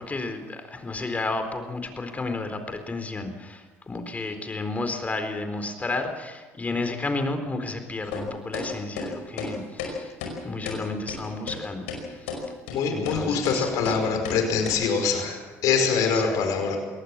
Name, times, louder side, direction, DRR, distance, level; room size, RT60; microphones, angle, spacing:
voice 1, 0.0-10.1 10.4-12.4 12.9-14.1 16.0-16.4, left 3 dB, 25° left, 7 dB, 4.1 m, -32 dB
sound 1, 8.1-8.2 8.5-8.7 9.0-9.1 9.4-9.5 9.8-9.9 10.2-10.3 10.7-10.8 11.1-11.2 11.5-11.6 11.9-12.0 12.3-12.4 12.7-12.8 13.1-13.2 13.4-13.6 13.8-14.0 14.2-14.4 14.6-14.7, left 5 dB, 90° left, 5.2 m, -32 dB
voice 2, 12.7-16.8, left 5 dB, 70° left, 5 dB, 5.2 m, -24 dB
22.5 x 18.5 x 7.5 m, 1.3 s
supercardioid pair, 75°, 6 cm